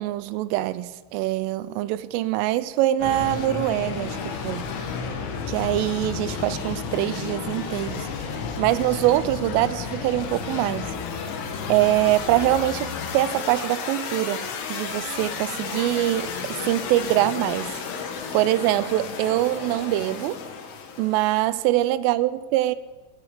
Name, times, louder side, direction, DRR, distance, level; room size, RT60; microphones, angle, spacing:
voice 1, 0.0-4.7 5.5-8.1 8.6-10.9 11.7-17.8 18.3-20.4 21.0-22.8, right 15 dB, 85° right, 3.2 m, -24 dB
sound 1, 3.0-21.3, left 6 dB, 75° left, 4.1 m, -32 dB
24.5 x 8.6 x 6.7 m
omnidirectional pair, 5.8 m